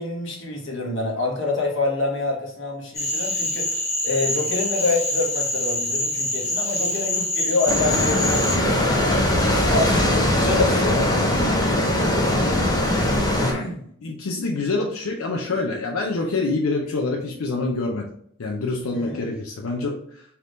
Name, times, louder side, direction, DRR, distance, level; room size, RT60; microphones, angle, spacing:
voice 1, 0.0-9.1 9.4-11.7 13.5-13.8 18.9-19.3, left 3 dB, 60° left, -1 dB, 1.1 m, -27 dB
Cricket / Frog, 2.9-8.5, left 1 dB, 30° left, 1.5 m, -25 dB
sound 1, 7.7-13.5, left 1 dB, 15° left, 0.7 m, -20 dB
voice 2, 14.0-18.1 18.4-20.2, left 3 dB, 90° left, 0 dB, 0.6 m, -26 dB
3.5 x 2.9 x 3.7 m, 0.66 s
head